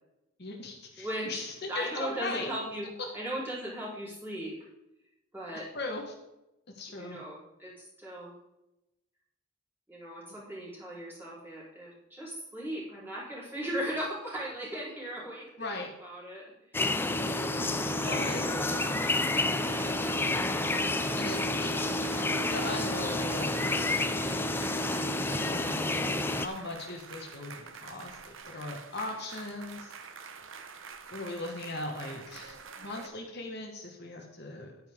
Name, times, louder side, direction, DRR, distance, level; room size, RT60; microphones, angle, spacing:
voice 1, 0.4-2.5 5.7-6.1 6.7-7.2 15.6-15.9 17.1-17.4 18.1-18.4 18.7-19.0 21.2-22.0 22.5-29.9 31.1-34.7, left 2 dB, 50° left, 1 dB, 1.4 m, -39 dB
voice 2, 1.0-1.4 1.7-2.9 3.1-4.6 5.3-5.7 6.9-8.4 9.9-15.7 16.0-16.5 18.0-20.2, right 1 dB, 10° right, -7 dB, 4.0 m, -38 dB
sound 1, 16.7-26.5, left 2 dB, 10° left, 0.3 m, -29 dB
sound 2, 17.3-33.1, right 5 dB, 65° right, 0.9 m, -46 dB
10.0 x 9.6 x 3.7 m, 0.92 s
head